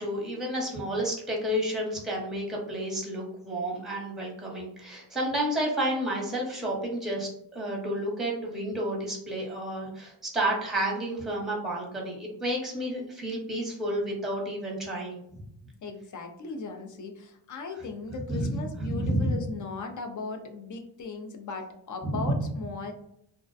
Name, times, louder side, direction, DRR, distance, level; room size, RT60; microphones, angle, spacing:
voice 1, 0.0-15.2 18.4-18.5 18.8-19.3 22.0-22.1, right 1 dB, ahead, -3 dB, 0.7 m, -31 dB
voice 2, 15.8-22.9, left 4 dB, 45° left, 5 dB, 0.4 m, -37 dB
2.4 x 2.1 x 2.5 m, 0.74 s
cardioid pair, 95°, 45 cm